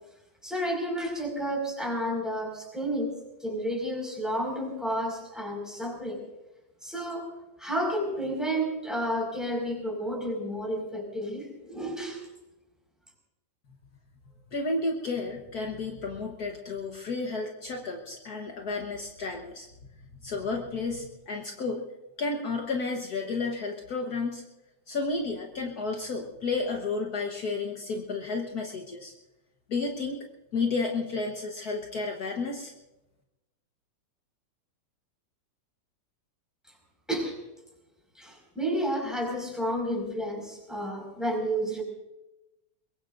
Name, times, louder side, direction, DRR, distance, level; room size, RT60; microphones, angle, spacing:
voice 1, 0.4-6.2 6.8-12.2 37.1-37.4 38.1-41.8, equal, ahead, 0 dB, 4.9 m, -31 dB
voice 2, 14.5-19.7 20.2-21.9 22.2-24.4 24.9-29.1 29.7-30.3 30.5-32.7, left 3 dB, 60° left, 1 dB, 0.9 m, -32 dB
23.0 x 22.5 x 2.6 m, 0.97 s
omnidirectional pair, 3.5 m